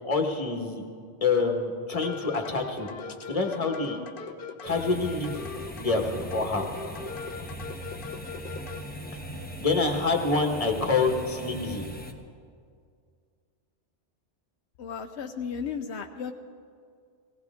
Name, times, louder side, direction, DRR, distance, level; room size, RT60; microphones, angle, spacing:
voice 1, 0.0-0.8 1.2-4.0 4.6-5.4 5.8-6.6 9.6-11.8, left 3 dB, 30° left, 3 dB, 1.4 m, -27 dB
sound 1, 1.9-8.8, left 5 dB, 55° left, 0.9 m, -40 dB
sound 2, 4.6-12.1, equal, 10° left, 0.9 m, -40 dB
voice 2, 14.8-16.3, left 6 dB, 80° left, 5 dB, 0.9 m, -34 dB
18.0 x 17.5 x 3.6 m, 2.2 s
omnidirectional pair, 1.1 m